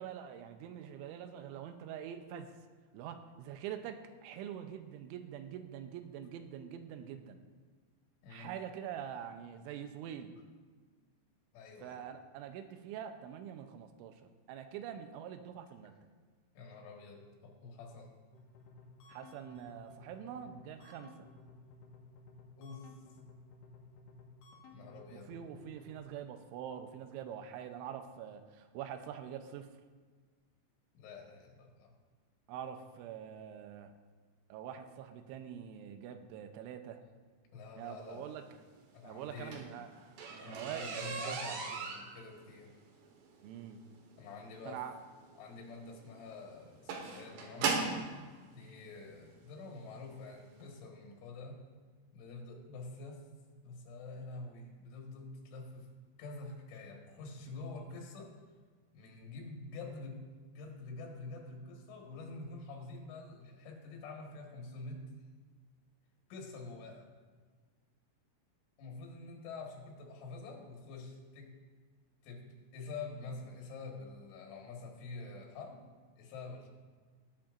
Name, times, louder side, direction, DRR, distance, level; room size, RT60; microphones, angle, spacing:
voice 1, 0.0-2.6 2.9-7.4 8.3-10.4 11.8-16.0 19.1-21.3 25.1-29.7 32.5-33.9 34.5-37.0 37.8-38.5 39.0-41.6 43.4-43.8 44.7-45.0, right 9 dB, 90° right, 8 dB, 3.1 m, -45 dB
voice 2, 11.5-12.0 16.6-18.1 22.6-22.9 24.7-25.4 31.0-32.0 37.5-38.3 38.9-39.7 40.4-42.7 44.2-44.8 45.4-47.8 48.5-51.6 52.1-53.2 53.6-55.9 56.2-58.3 58.9-65.0 66.3-67.1 68.8-71.5 72.2-75.8 76.2-76.7, left 3 dB, 90° left, 0 dB, 4.0 m, -47 dB
sound 1, 18.3-26.0, left 3 dB, 60° left, 2.4 m, -56 dB
sound 2, 39.2-48.1 49.0-49.1 49.7-49.9 50.2-50.3 50.6-50.7, right 4 dB, 70° right, 3.2 m, -38 dB
19.0 x 8.7 x 2.5 m, 1.5 s
omnidirectional pair, 5.3 m